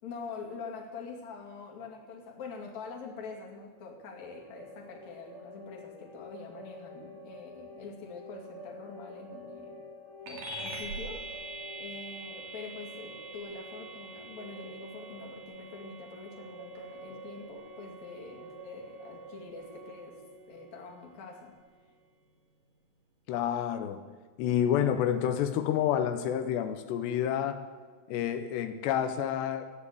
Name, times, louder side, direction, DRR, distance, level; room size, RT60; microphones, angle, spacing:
voice 1, 0.0-9.9 10.2-11.3 11.8-20.2 20.5-21.6, left 4 dB, 50° left, -1 dB, 3.2 m, -45 dB
sound 1, 4.1-21.8, right 1 dB, 90° right, 6.1 m, -48 dB
sound 2, 10.3-20.1, right 2 dB, 65° right, 4.6 m, -45 dB
voice 2, 23.3-24.0 24.4-27.6 28.1-29.7, left 9 dB, 85° left, 8 dB, 3.0 m, -29 dB
15.0 x 9.8 x 8.5 m, 1.6 s
omnidirectional pair, 4.8 m